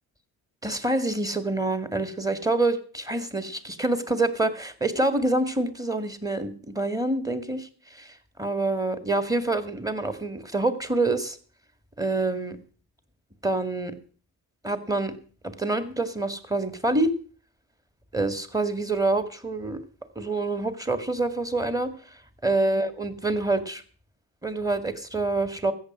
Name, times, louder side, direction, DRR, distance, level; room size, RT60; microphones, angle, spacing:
voice 1, 0.6-11.4 12.0-12.6 13.4-13.9 14.6-15.1 15.4-17.1 18.1-19.8 20.2-21.9 22.4-23.8 24.4-25.7, right 2 dB, 10° right, 11 dB, 1.9 m, -26 dB
14.0 x 8.8 x 6.1 m, 0.41 s
hypercardioid pair, 55°, 46 cm